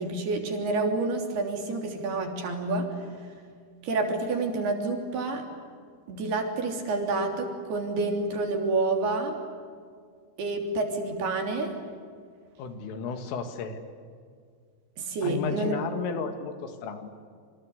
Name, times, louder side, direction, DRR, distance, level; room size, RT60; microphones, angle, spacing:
voice 1, 0.0-3.2 3.8-5.4 6.1-9.4 10.4-11.7 15.0-15.8, right 3 dB, 55° right, 3 dB, 5.0 m, -28 dB
voice 2, 12.6-13.8 15.2-17.1, left 5 dB, 80° left, 7 dB, 4.8 m, -33 dB
28.0 x 26.0 x 8.2 m, 2.1 s
omnidirectional pair, 5.7 m